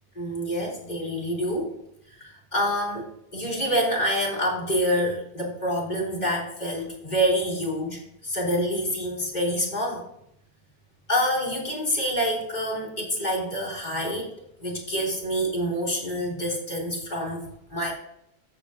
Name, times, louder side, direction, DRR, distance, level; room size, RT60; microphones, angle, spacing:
voice 1, 0.1-1.7 2.1-10.0 11.1-17.9, equal, 40° left, -4 dB, 3.5 m, -27 dB
14.0 x 8.4 x 2.8 m, 0.77 s
omnidirectional pair, 1.1 m